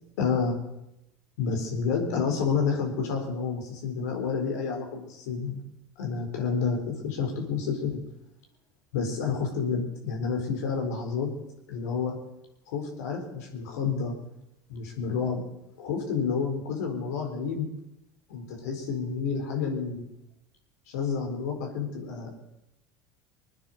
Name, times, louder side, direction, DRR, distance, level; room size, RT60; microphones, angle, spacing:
voice 1, 0.2-0.6 1.4-5.6 6.0-8.0 8.9-11.3 11.7-12.2 12.7-14.2 14.7-15.4 15.8-17.7 18.3-20.1 20.9-22.3, left 5 dB, 85° left, 2 dB, 4.3 m, -29 dB
21.5 x 9.6 x 6.7 m, 0.88 s
supercardioid pair, 95°, 9 cm